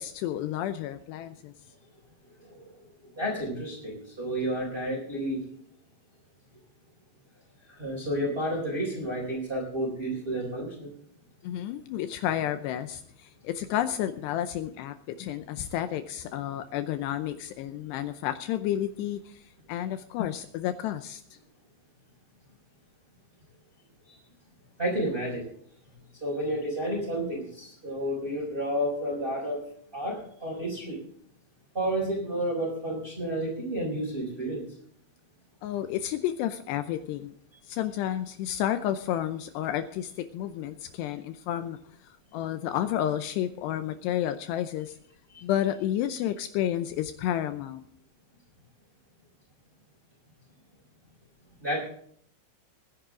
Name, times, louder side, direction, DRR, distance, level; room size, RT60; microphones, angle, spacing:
voice 1, 0.0-1.5 11.4-21.2 35.6-37.3 37.6-41.8 42.3-45.0 45.4-47.9, left 11 dB, 80° left, 10 dB, 2.6 m, -31 dB
voice 2, 3.2-5.4 7.8-10.9 24.8-25.4 26.2-29.6 29.9-31.0 31.7-34.6 45.3-45.4 51.6-51.8, right 1 dB, 10° right, -5 dB, 4.2 m, -31 dB
21.0 x 10.5 x 3.8 m, 0.63 s
omnidirectional pair, 5.3 m